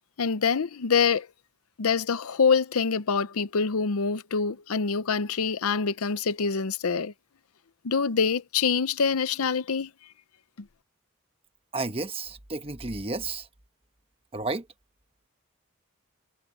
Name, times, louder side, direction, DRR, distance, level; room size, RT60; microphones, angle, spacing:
voice 1, 0.2-1.3 1.8-7.1 7.8-9.9, left 5 dB, 80° left, 0.7 m, -25 dB
voice 2, 11.7-13.5 14.3-14.7, right 3 dB, 25° right, 1.2 m, -32 dB
head